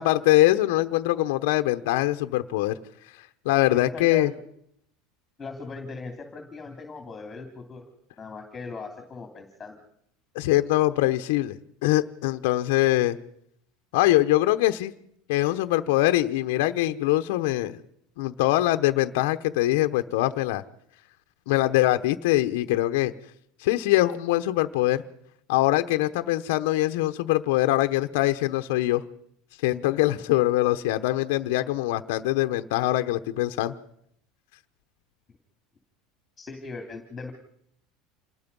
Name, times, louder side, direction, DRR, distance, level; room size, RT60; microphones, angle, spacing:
voice 1, 0.0-2.8 3.4-4.3 10.3-13.2 13.9-14.9 15.3-17.8 18.2-20.6 21.5-23.1 23.6-25.0 25.5-29.0 29.6-33.7, left 16 dB, 75° left, 7 dB, 1.0 m, -23 dB
voice 2, 3.7-4.3 5.4-7.8 8.2-9.8 36.4-37.3, left 4 dB, 15° left, 4 dB, 2.8 m, -39 dB
27.5 x 19.5 x 5.5 m, 0.72 s
supercardioid pair, 150°, 0 cm